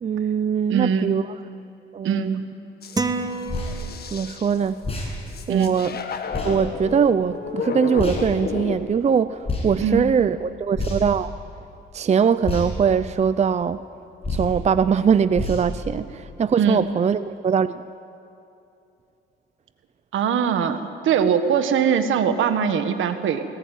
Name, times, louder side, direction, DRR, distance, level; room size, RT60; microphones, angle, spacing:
voice 1, 0.0-1.2 1.9-2.4 4.1-4.8 5.5-6.0 6.4-11.3 11.9-13.8 14.3-17.8, right 7 dB, 35° right, 14 dB, 0.6 m, -21 dB
voice 2, 0.7-1.2 2.0-2.4 5.5-5.8 9.8-10.0 16.6-16.8 20.1-23.4, right 7 dB, 80° right, 9 dB, 1.6 m, -21 dB
sound 1, 2.8-4.6 5.3-8.8, left 5 dB, 55° left, 1.8 m, -32 dB
sound 2, 3.0-4.5, right 3 dB, 20° right, 1.2 m, -28 dB
sound 3, 3.5-3.7 4.8-5.1 6.3-6.5 8.0-8.2 9.4-9.7 10.7-11.2 12.4-12.7 14.2-14.5 15.3-15.6, left 2 dB, 30° left, 7.9 m, -27 dB
19.5 x 19.5 x 9.3 m, 2.8 s
cardioid pair, 90°, 20 cm